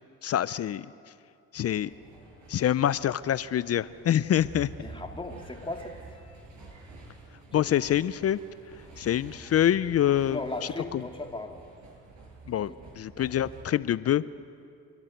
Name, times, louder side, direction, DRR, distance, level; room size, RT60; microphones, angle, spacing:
voice 1, 0.2-0.9 1.5-1.9 2.5-4.7 7.5-8.4 9.0-10.4 10.9-11.0 12.5-12.7 13.0-14.2, left 11 dB, 45° left, 17 dB, 0.5 m, -25 dB
sound 1, 1.5-13.6, right 3 dB, 55° right, 6.7 m, -49 dB
voice 2, 4.8-5.9 7.5-7.7 10.3-11.6 12.6-12.8, left 2 dB, 15° left, 2 dB, 2.7 m, -37 dB
29.5 x 12.0 x 9.3 m, 2.5 s
supercardioid pair, 80°, 35 cm